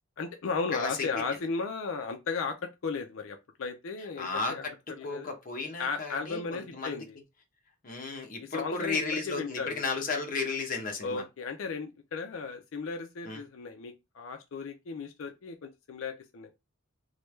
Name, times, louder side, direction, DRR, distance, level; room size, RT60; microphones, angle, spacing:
voice 1, 0.2-4.6 5.0-5.3 5.8-7.2 8.4-9.8 11.0-16.5, left 4 dB, 80° left, 0.4 m, -35 dB
voice 2, 0.7-1.1 4.2-7.0 7.8-11.2 13.2-13.4, left 4 dB, 40° left, 0.8 m, -34 dB
3.1 x 2.2 x 3.1 m
head